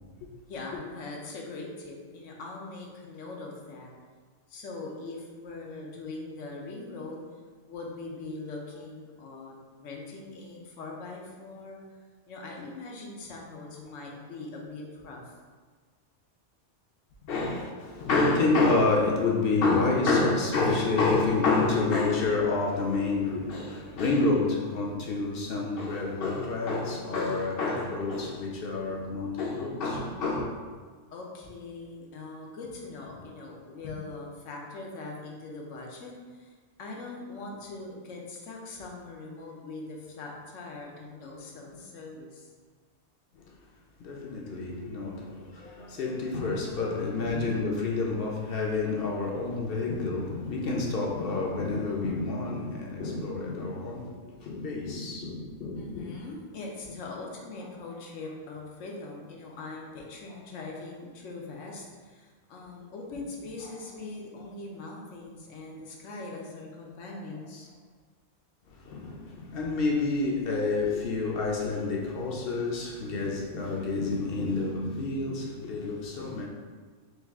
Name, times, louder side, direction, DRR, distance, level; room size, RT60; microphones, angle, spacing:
voice 1, 0.5-3.9 4.5-7.2 7.6-15.3 17.1-17.6 31.1-42.5 43.3-43.4 47.3-47.5 50.2-50.3 53.0-53.2 55.7-67.8, left 3 dB, 90° left, 1.1 m, -41 dB
voice 2, 17.3-17.7 18.0-30.5 43.4-43.5 44.0-56.1 68.7-76.5, left 3 dB, 60° left, 0.7 m, -28 dB
4.6 x 2.3 x 3.4 m
omnidirectional pair, 1.3 m